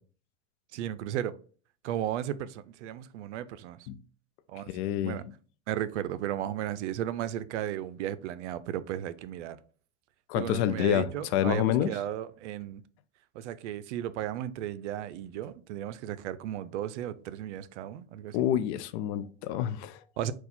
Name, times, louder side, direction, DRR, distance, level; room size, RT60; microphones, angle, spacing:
voice 1, 0.7-1.3 1.8-3.8 4.5-4.7 5.0-5.2 5.7-9.6 10.4-12.8 13.3-18.5 20.2-20.3, right 11 dB, 80° right, 0.5 m, -35 dB
voice 2, 4.7-5.3 10.3-12.0 18.3-20.0, left 11 dB, 65° left, 0.5 m, -28 dB
4.2 x 2.3 x 4.1 m
hypercardioid pair, 100°, 35 cm